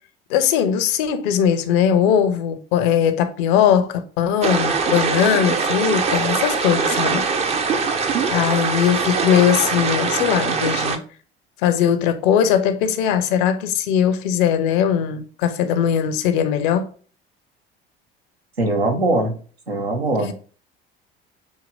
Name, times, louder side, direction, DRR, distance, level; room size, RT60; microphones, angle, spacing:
voice 1, 0.3-7.3 8.3-11.0 11.6-16.9 20.2-20.3, left 8 dB, 55° left, 0.6 m, -19 dB
sound 1, 4.4-11.0, right 5 dB, 20° right, 0.4 m, -22 dB
voice 2, 18.6-19.3 19.7-20.3, right 2 dB, 85° right, 0.7 m, -21 dB
6.3 x 2.8 x 2.5 m
figure-of-eight pair, 60°, 30 cm